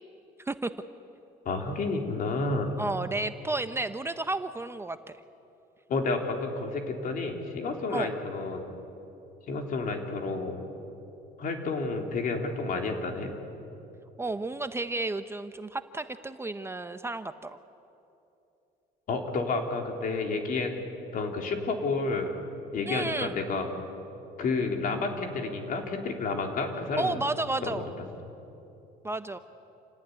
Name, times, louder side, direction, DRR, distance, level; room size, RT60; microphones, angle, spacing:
voice 1, 0.4-0.7 2.8-5.2 7.9-8.1 14.2-17.6 22.9-23.3 27.0-27.9 29.0-29.4, right 2 dB, 15° right, 10 dB, 0.8 m, -32 dB
voice 2, 1.5-2.7 5.9-8.7 9.5-10.6 11.4-13.4 19.1-20.7 21.1-22.3 22.7-23.7 24.4-27.2 27.6-27.8, left 3 dB, 55° left, 3 dB, 3.7 m, -30 dB
28.5 x 17.5 x 9.7 m, 2.9 s
cardioid pair, 110°, 17 cm